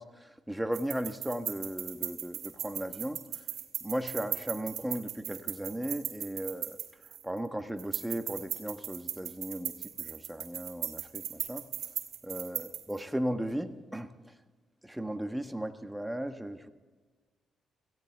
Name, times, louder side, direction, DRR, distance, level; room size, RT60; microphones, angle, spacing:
voice 1, 0.0-3.2 3.8-6.8 7.2-11.7 12.2-14.1 14.8-16.7, right 1 dB, 10° right, 7 dB, 1.4 m, -36 dB
sound 1, 0.7-7.4 7.8-13.0, right 10 dB, 75° right, 1.6 m, -38 dB
17.5 x 15.5 x 3.5 m, 1.4 s
supercardioid pair, 55°, 0 cm